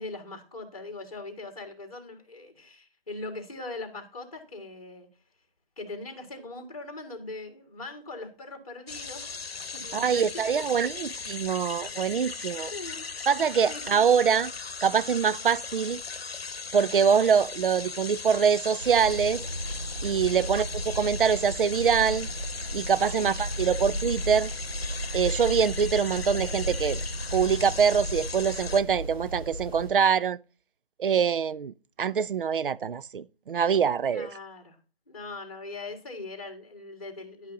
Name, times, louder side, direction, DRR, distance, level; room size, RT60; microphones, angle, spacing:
voice 1, 0.0-5.1 5.8-9.4 9.7-10.6 10.9-11.1 12.7-13.1 13.7-14.0 20.3-20.5 23.1-23.3 34.1-34.8 35.1-37.5, left 3 dB, 35° left, 1.9 m, -41 dB
sound 1, 8.9-28.8, left 5 dB, 85° left, 0.9 m, -38 dB
voice 2, 9.9-12.7 13.3-14.5 14.8-16.0 16.7-19.4 20.0-22.3 22.7-24.5 25.1-27.0 27.3-30.4 31.0-34.3, right 7 dB, 65° right, 0.4 m, -24 dB
sound 2, 18.8-29.9, right 1 dB, 25° right, 1.6 m, -34 dB
10.5 x 5.6 x 3.8 m
figure-of-eight pair, 175°, 30 cm